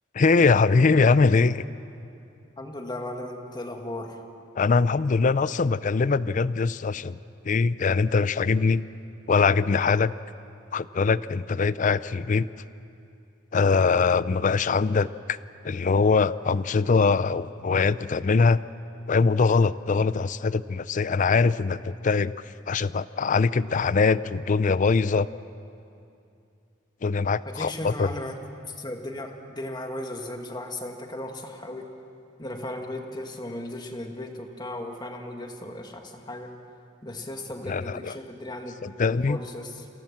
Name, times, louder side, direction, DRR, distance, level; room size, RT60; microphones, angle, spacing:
voice 1, 0.1-1.6 4.6-7.1 7.4-8.9 9.3-10.1 10.7-12.5 13.5-15.4 15.6-18.6 19.1-22.3 22.7-25.3 27.0-28.1 37.7-38.0 38.8-39.4, left 4 dB, 40° left, 17 dB, 0.4 m, -22 dB
voice 2, 2.6-4.2 27.4-31.9 32.4-36.6 37.0-38.8 39.2-39.9, left 1 dB, 20° left, 4 dB, 1.7 m, -36 dB
27.5 x 17.0 x 7.3 m, 2.6 s
head